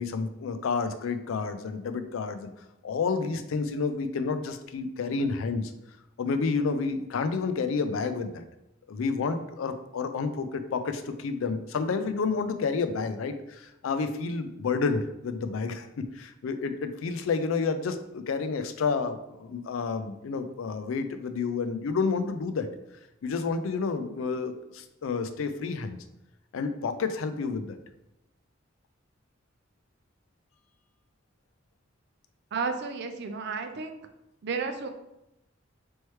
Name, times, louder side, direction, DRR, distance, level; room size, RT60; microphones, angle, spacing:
voice 1, 0.0-2.5 2.8-5.7 6.2-8.4 8.9-15.9 16.1-22.7 23.2-26.0 26.5-27.8, left 4 dB, 90° left, 10 dB, 0.4 m, -30 dB
voice 2, 32.5-34.0 34.4-34.9, right 5 dB, 55° right, 6 dB, 0.5 m, -32 dB
4.4 x 3.2 x 3.1 m, 0.90 s
head